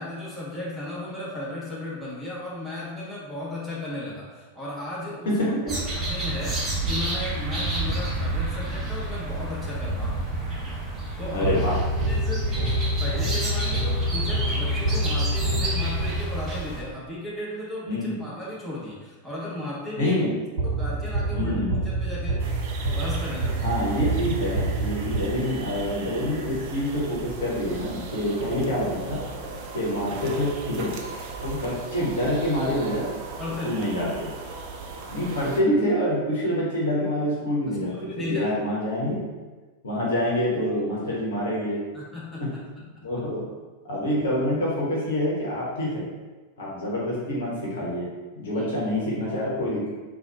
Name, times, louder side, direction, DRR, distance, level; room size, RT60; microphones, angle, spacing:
voice 1, 0.0-5.3 5.8-10.3 11.2-11.5 12.1-12.7 13.0-20.2 20.6-22.5 22.9-23.7 28.4-28.5 33.4-33.8 37.9-38.5 41.9-42.5 43.0-43.1 48.5-48.7, left 1 dB, ahead, -9 dB, 1.4 m, -35 dB
voice 2, 5.3-5.8 11.3-11.8 17.9-18.2 20.0-20.3 21.3-21.8 23.6-29.2 29.7-30.9 31.4-33.1 33.6-34.3 35.1-39.2 39.8-41.8 42.4-42.5 43.0-43.5 43.8-46.0 46.6-48.1 48.3-49.9, equal, 60° left, -5 dB, 1.1 m, -26 dB
sound 1, 5.7-16.8, right 2 dB, 20° right, 1.1 m, -30 dB
sound 2, 11.4-16.5 20.6-25.8, right 1 dB, 60° right, 1.0 m, -27 dB
sound 3, 22.4-35.6, right 3 dB, 45° right, 0.5 m, -37 dB
4.0 x 2.6 x 4.1 m, 1.3 s
figure-of-eight pair, 90°, 0 cm